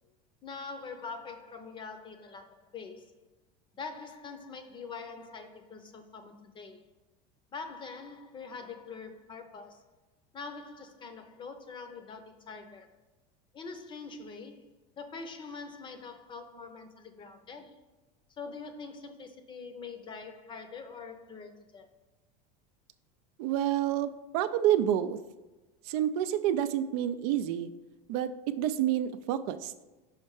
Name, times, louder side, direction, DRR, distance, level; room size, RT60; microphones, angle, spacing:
voice 1, 0.4-3.2 3.7-6.8 7.5-9.8 10.3-12.9 13.5-17.8 18.4-21.9, left 4 dB, 25° left, 8 dB, 0.6 m, -44 dB
voice 2, 23.4-25.2 25.8-27.7 28.1-29.7, right 11 dB, 70° right, 12 dB, 0.5 m, -28 dB
5.7 x 4.3 x 4.7 m, 1.1 s
supercardioid pair, 140°, 21 cm